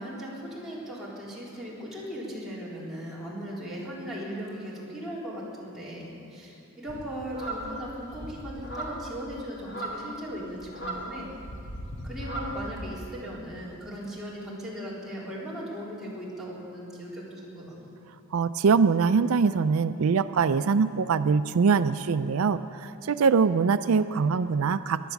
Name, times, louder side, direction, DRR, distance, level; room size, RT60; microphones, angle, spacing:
voice 1, 0.0-11.3 12.0-17.8, equal, ahead, -8 dB, 4.0 m, -38 dB
sound 1, 6.9-13.0, right 1 dB, 55° left, 2.4 m, -38 dB
voice 2, 18.3-25.1, right 5 dB, 85° right, 12 dB, 0.4 m, -23 dB
18.5 x 11.0 x 7.1 m, 2.9 s
head